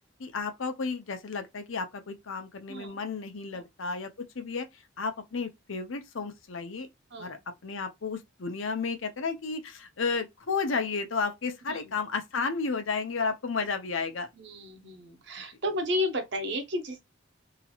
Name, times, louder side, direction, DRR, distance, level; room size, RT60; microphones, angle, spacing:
voice 1, 0.2-4.7 5.0-6.9 7.2-14.3, left 4 dB, 90° left, 0.7 m, -32 dB
voice 2, 11.7-12.0 14.4-17.0, left 1 dB, 65° right, 1.0 m, -33 dB
2.9 x 2.4 x 2.9 m
head